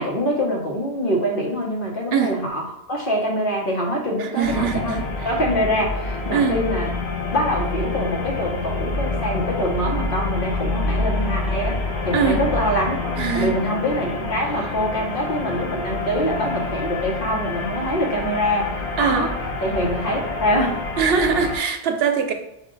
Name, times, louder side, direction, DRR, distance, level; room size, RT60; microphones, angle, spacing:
voice 1, 0.0-2.6 2.9-5.0 5.2-6.9 7.3-19.3 19.6-20.8, equal, 60° left, -1 dB, 1.1 m, -24 dB
voice 2, 4.2-5.3 6.3-6.6 12.1-12.4 13.2-13.5 19.0-19.3 21.0-22.3, right 6 dB, 75° right, 6 dB, 0.8 m, -22 dB
sound 1, 4.4-21.6, left 3 dB, 85° left, 1.1 m, -27 dB
5.4 x 2.4 x 3.8 m, 0.87 s
omnidirectional pair, 1.1 m